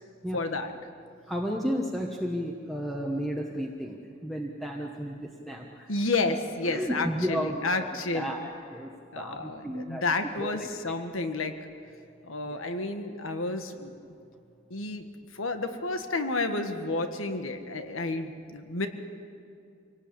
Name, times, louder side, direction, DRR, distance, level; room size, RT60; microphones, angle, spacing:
voice 1, 0.3-0.7 5.9-8.4 9.1-11.5 12.2-13.9 14.7-15.0 15.3-18.9, left 3 dB, 85° left, 7 dB, 1.6 m, -31 dB
voice 2, 1.3-5.9 6.7-8.9 9.2-10.0 10.4-10.7 12.5-12.6, equal, ahead, 0 dB, 1.2 m, -33 dB
26.0 x 18.5 x 8.7 m, 2.5 s
head